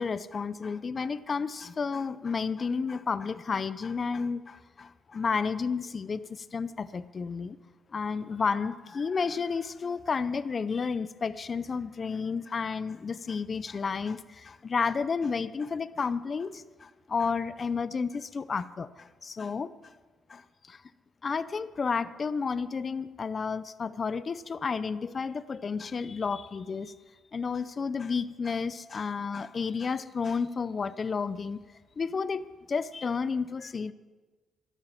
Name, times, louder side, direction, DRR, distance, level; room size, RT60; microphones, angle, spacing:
voice 1, 0.0-7.6 7.9-19.7 20.3-20.8 21.2-26.9 27.3-31.6 32.0-33.9, left 5 dB, 40° left, 16 dB, 0.5 m, -31 dB
12.0 x 11.0 x 7.5 m, 1.4 s
cardioid pair, 90°, 0 cm